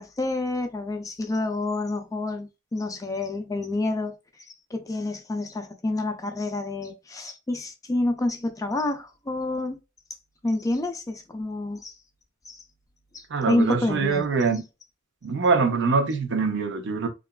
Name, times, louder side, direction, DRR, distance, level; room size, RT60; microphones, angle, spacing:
voice 1, 0.0-4.1 4.7-9.8 10.4-11.9 12.5-12.6 13.1-14.3, left 2 dB, 15° left, 0.4 m, -28 dB
voice 2, 13.3-14.6 15.2-17.1, right 4 dB, 60° right, 0.6 m, -24 dB
2.8 x 2.4 x 2.2 m
head